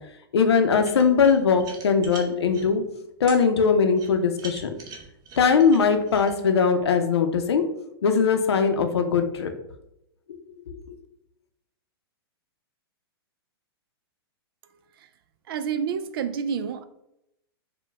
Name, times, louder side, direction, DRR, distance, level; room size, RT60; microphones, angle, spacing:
voice 1, 0.3-2.8 3.2-4.7 5.4-7.6 8.0-9.5 10.3-10.8, left 6 dB, 90° left, 6 dB, 0.6 m, -21 dB
sound 1, 0.8-2.7 3.3-3.4 3.9-6.3, right 4 dB, 30° right, 0.9 m, -42 dB
voice 2, 15.5-16.8, right 7 dB, 65° right, 12 dB, 0.4 m, -28 dB
5.0 x 2.2 x 3.4 m, 0.84 s
hypercardioid pair, 135°, 13 cm